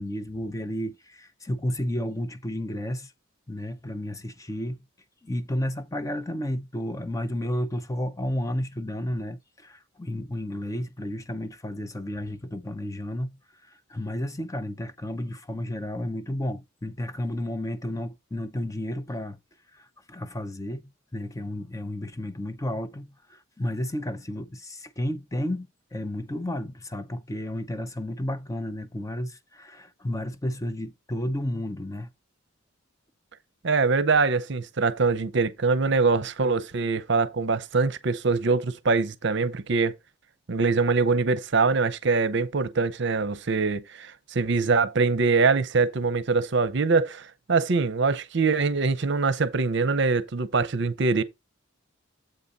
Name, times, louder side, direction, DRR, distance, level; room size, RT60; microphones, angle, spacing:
voice 1, 0.0-3.1 3.5-4.8 5.2-13.3 13.6-19.4 19.7-32.1, left 1 dB, 15° left, 0.5 m, -32 dB
voice 2, 33.6-39.9 40.5-51.2, right 4 dB, 60° right, 0.7 m, -23 dB
7.8 x 4.0 x 5.2 m
head